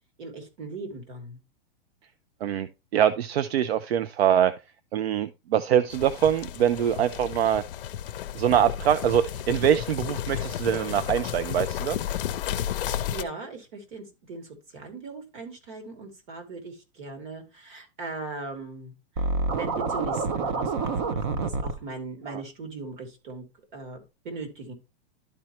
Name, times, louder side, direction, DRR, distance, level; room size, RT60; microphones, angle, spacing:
voice 1, 0.2-1.4 12.8-19.3 19.6-23.5 23.7-24.7, right 3 dB, 50° right, 2.6 m, -39 dB
voice 2, 2.4-4.5 4.9-7.6 8.3-12.0 22.3-22.4, right 9 dB, 80° right, 0.6 m, -24 dB
sound 1, 5.9-13.2, left 10 dB, 60° left, 0.6 m, -32 dB
Scratching (performance technique), 19.2-21.7, right 3 dB, 25° right, 0.4 m, -27 dB
12.0 x 4.4 x 3.0 m
hypercardioid pair, 165°, 31 cm